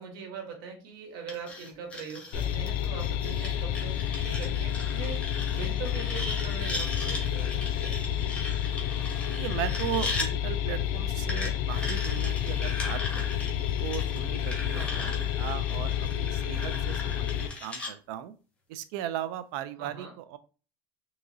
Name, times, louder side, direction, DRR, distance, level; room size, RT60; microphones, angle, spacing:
voice 1, 0.0-8.0 14.7-15.1 19.8-20.1, right 5 dB, 90° right, 3 dB, 1.1 m, -42 dB
sound 1, 1.3-10.3 11.3-17.9, left 2 dB, 10° left, 0.8 m, -38 dB
sound 2, 2.3-17.5, left 10 dB, 70° left, 0.5 m, -30 dB
voice 2, 9.4-13.4 13.8-18.3 18.7-20.4, right 11 dB, 70° right, 13 dB, 0.4 m, -37 dB
3.7 x 2.9 x 2.6 m, 0.36 s
cardioid pair, 160°, 11 cm